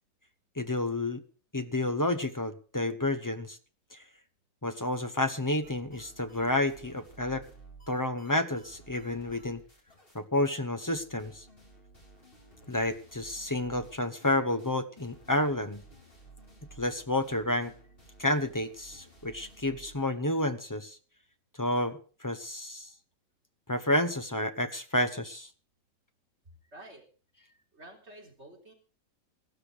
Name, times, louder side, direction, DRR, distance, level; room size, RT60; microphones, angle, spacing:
voice 1, 0.6-1.2 1.5-3.6 3.9-4.0 4.6-7.4 7.9-9.6 10.1-11.4 12.7-15.8 16.8-17.7 18.2-21.0 21.6-22.9 23.7-25.5, left 1 dB, 15° left, 9 dB, 0.8 m, -30 dB
sound 1, 5.6-10.2 10.4-10.6 10.8-20.1, right 2 dB, 40° left, 4.1 m, -55 dB
voice 2, 26.7-27.0 27.7-28.7, right 1 dB, 50° right, 0 dB, 3.9 m, -49 dB
15.5 x 12.5 x 5.0 m, 0.39 s
omnidirectional pair, 1.5 m